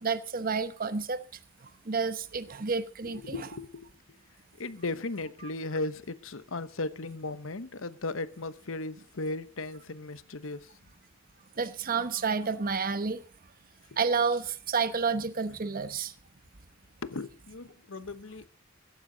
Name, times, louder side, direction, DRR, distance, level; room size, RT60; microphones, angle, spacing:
voice 1, 0.0-1.2 1.9-3.4 11.6-13.2 14.0-16.1, right 5 dB, 45° right, 1.0 m, -30 dB
voice 2, 3.1-3.9 4.6-10.7 17.0-18.5, left 2 dB, 70° left, 1.0 m, -36 dB
15.0 x 14.0 x 4.0 m
head